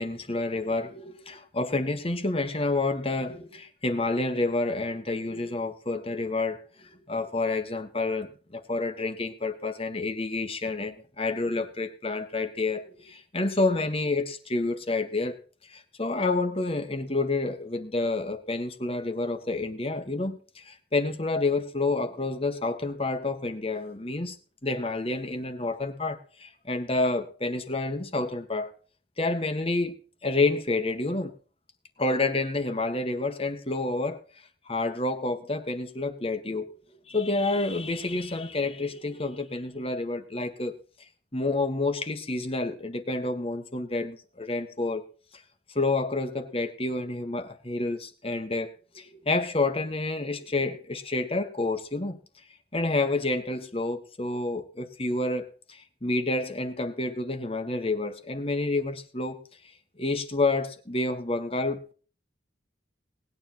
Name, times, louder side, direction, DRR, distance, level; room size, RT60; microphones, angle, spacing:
voice 1, 0.0-15.4 15.7-24.4 24.6-28.7 29.2-30.0 30.2-31.3 32.0-34.2 34.7-36.7 37.1-40.7 41.3-45.0 45.7-48.7 48.9-52.2 52.7-59.4 60.0-61.9, left 2 dB, 30° left, 1.7 m, -29 dB
19.0 x 9.6 x 4.5 m
head